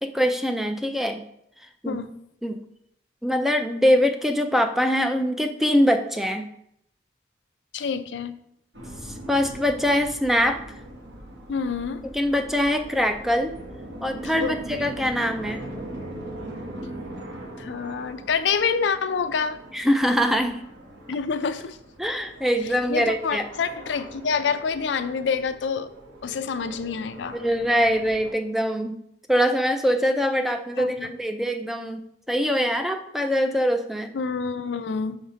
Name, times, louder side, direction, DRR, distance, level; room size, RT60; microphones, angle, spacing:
voice 1, 0.0-1.2 1.8-2.0 2.4-2.6 3.2-6.4 9.0-10.6 12.0-13.5 14.0-15.6 19.7-20.6 22.0-23.4 27.3-29.0 29.3-34.1, equal, ahead, 6 dB, 0.4 m, -23 dB
voice 2, 7.7-8.3 11.5-12.0 14.4-14.9 17.6-19.6 21.1-21.8 22.9-25.9 26.2-27.4 30.8-31.1 34.1-35.2, left 5 dB, 75° left, 11 dB, 0.4 m, -27 dB
sound 1, 8.7-28.3, right 1 dB, 70° right, 1.4 m, -41 dB
5.8 x 4.1 x 5.0 m, 0.74 s
head